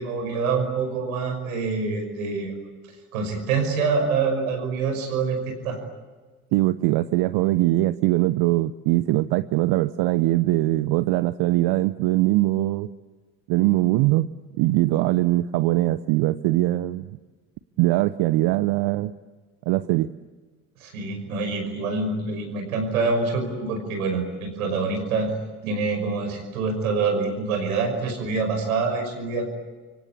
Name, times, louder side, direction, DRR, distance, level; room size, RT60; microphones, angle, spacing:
voice 1, 0.0-2.6 3.1-5.8 20.8-25.3 25.6-29.5, right 4 dB, 80° right, 5 dB, 5.8 m, -26 dB
voice 2, 6.5-12.9 13.5-17.0 17.8-19.1 19.7-20.1, right 17 dB, 60° right, 14 dB, 0.8 m, -21 dB
28.5 x 24.5 x 8.4 m, 1.3 s
hypercardioid pair, 60°, 42 cm